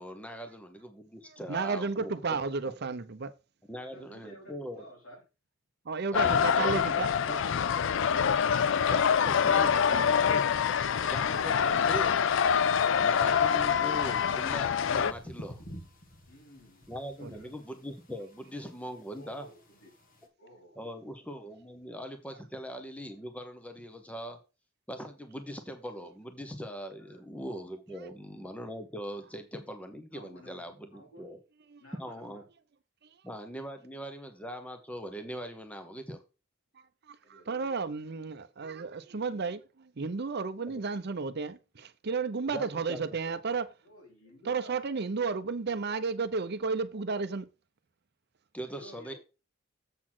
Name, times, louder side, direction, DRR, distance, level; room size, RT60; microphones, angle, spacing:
voice 1, 0.0-2.7 3.7-4.9 6.1-6.8 7.3-7.4 8.9-10.4 11.0-12.2 13.0-15.6 16.9-19.5 20.8-24.4 24.9-31.4 32.0-32.4 33.2-36.2 42.5-43.0 48.5-49.1, equal, 5° left, 0.9 m, -41 dB
voice 2, 1.5-3.3 5.9-7.1 17.2-17.3 31.7-31.8 37.1-43.7 44.5-47.5, right 4 dB, 55° right, 0.6 m, -32 dB
voice 3, 3.7-5.2 6.5-7.7 8.7-10.3 13.3-13.4 16.3-16.9 17.2-17.5 19.1-19.9 20.4-20.8 27.0-27.2 30.1-31.2 31.8-32.4 37.2-37.5 43.8-44.7 48.7-49.2, right 1 dB, 85° left, 4.1 m, -52 dB
sound 1, 6.1-15.1, left 7 dB, 65° left, 0.4 m, -25 dB
sound 2, 8.5-20.3, equal, 45° left, 1.6 m, -54 dB
7.4 x 4.1 x 6.1 m
head